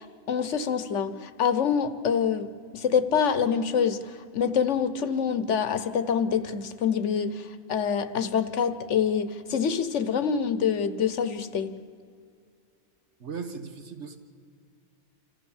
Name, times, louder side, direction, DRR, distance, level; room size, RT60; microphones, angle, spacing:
voice 1, 0.0-11.8, left 7 dB, 80° left, 1.2 m, -26 dB
voice 2, 13.2-14.2, right 5 dB, 75° right, 1.7 m, -37 dB
26.5 x 14.5 x 7.3 m
omnidirectional pair, 1.2 m